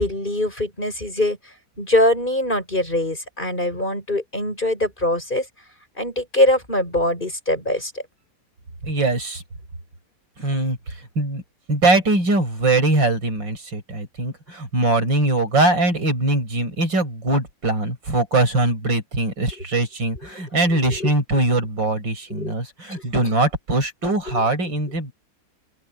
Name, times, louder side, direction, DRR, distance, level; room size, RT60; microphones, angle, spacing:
voice 1, 0.0-1.4 1.8-5.5 6.0-7.9 20.9-21.1 22.3-22.5 22.9-23.0 24.3-24.4, left 1 dB, 25° left, 7.6 m, -22 dB
voice 2, 8.8-9.4 10.4-11.4 11.7-25.1, right 2 dB, 85° right, 6.8 m, -21 dB
open air
omnidirectional pair, 2.0 m